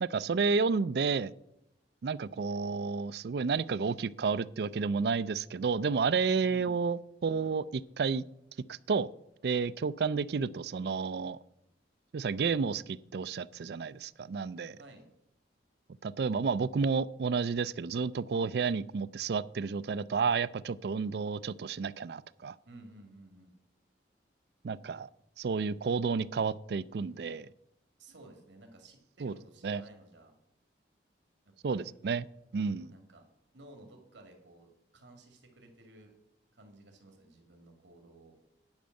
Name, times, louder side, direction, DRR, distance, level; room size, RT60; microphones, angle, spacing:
voice 1, 0.0-1.3 2.0-8.2 8.7-9.1 9.4-11.4 12.1-14.8 16.0-22.6 24.6-25.1 25.4-27.5 29.2-29.3 29.6-29.8 31.6-32.3 32.5-32.9, right 5 dB, 60° right, 16 dB, 0.4 m, -31 dB
voice 2, 6.4-6.8 14.8-15.1 22.7-23.5 28.0-30.3 31.5-31.9 32.9-33.3 33.5-36.1 36.5-38.4, right 1 dB, 85° right, 4 dB, 2.0 m, -55 dB
10.5 x 5.2 x 7.6 m, 0.82 s
head